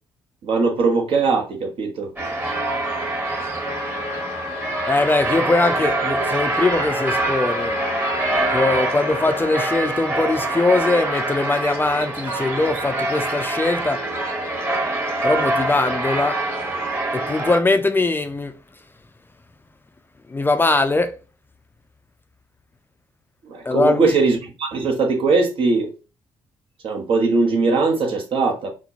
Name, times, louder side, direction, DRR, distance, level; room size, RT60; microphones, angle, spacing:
voice 1, 0.4-2.1 23.4-25.9 26.8-28.7, right 4 dB, 60° right, 1.0 m, -20 dB
sound 1, 2.2-17.6, right 2 dB, 20° right, 1.1 m, -25 dB
Trumpet, 3.6-9.8, left 7 dB, 65° left, 0.6 m, -34 dB
voice 2, 4.9-7.8 8.5-14.0 15.2-16.4 17.1-18.5 20.3-21.2 23.6-24.1, left 3 dB, 20° left, 0.4 m, -21 dB
4.1 x 2.0 x 2.8 m
hypercardioid pair, 45°, 10 cm